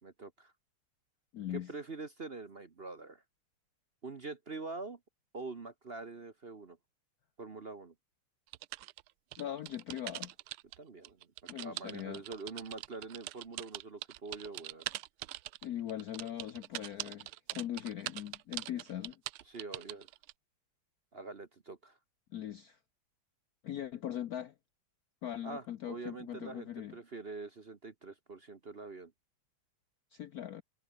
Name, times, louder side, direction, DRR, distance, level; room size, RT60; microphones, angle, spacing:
voice 1, 0.0-0.5 1.5-3.2 4.0-5.0 5.3-6.8 7.4-7.9 10.8-14.9 19.5-20.1 21.1-22.0 25.4-29.1, right 3 dB, 35° right, 1.1 m, -45 dB
voice 2, 1.3-1.7 9.4-10.3 11.5-12.2 15.6-19.2 22.3-22.8 23.6-24.5 25.2-27.0 30.1-30.6, left 11 dB, 65° left, 0.9 m, -40 dB
sound 1, 8.5-10.8 11.0-20.3, right 17 dB, 90° right, 1.6 m, -42 dB
omnidirectional pair, 2.3 m